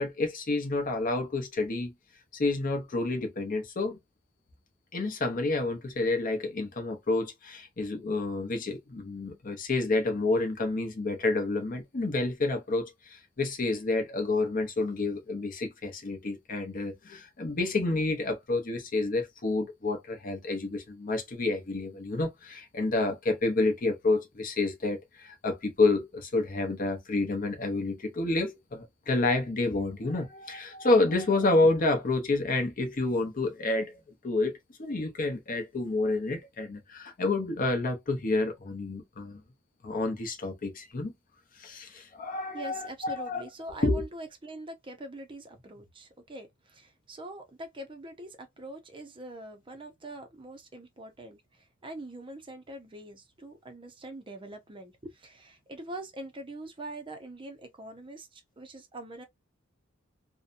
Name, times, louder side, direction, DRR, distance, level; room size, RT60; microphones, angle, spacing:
voice 1, 0.0-1.9 2.3-4.0 4.9-34.0 34.2-39.4 39.8-41.1 41.6-43.4 43.8-44.0, left 2 dB, 45° left, 0.7 m, -29 dB
voice 2, 42.5-59.2, right 1 dB, 25° right, 0.5 m, -43 dB
2.7 x 2.1 x 2.5 m
head